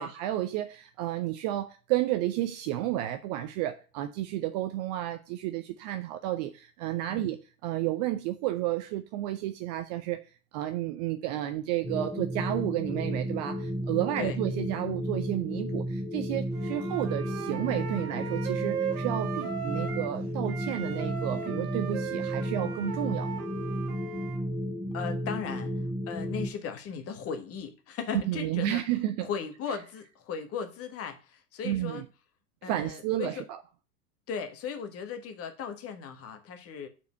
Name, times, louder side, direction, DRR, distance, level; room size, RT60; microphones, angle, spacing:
voice 1, 0.0-23.5 28.3-29.3 31.6-32.0 32.6-33.6, right 14 dB, 30° right, 0.4 m, -32 dB
sound 1, 11.8-26.5, equal, ahead, 1.4 m, -33 dB
Wind instrument woodwind instrument, 16.5-20.2 20.4-24.4, right 9 dB, 65° right, 1.7 m, -37 dB
voice 2, 24.9-25.7 26.1-28.8 29.2-32.0 32.6-33.4 34.3-36.9, left 6 dB, 30° left, 1.4 m, -37 dB
6.9 x 4.4 x 6.2 m
figure-of-eight pair, 90°, 46 cm